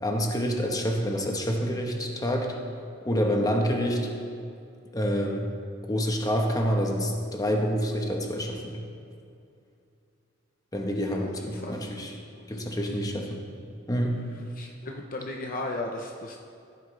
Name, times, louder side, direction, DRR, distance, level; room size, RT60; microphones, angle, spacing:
voice 1, 0.0-2.6 3.0-4.1 4.9-5.5 5.9-8.8 10.7-12.1 12.5-13.5 13.9-14.2, equal, 20° left, 1 dB, 1.1 m, -27 dB
voice 2, 11.1-11.9 12.3-12.9 14.5-16.4, left 2 dB, 45° left, 1 dB, 0.7 m, -37 dB
15.0 x 8.8 x 3.3 m, 2.5 s
head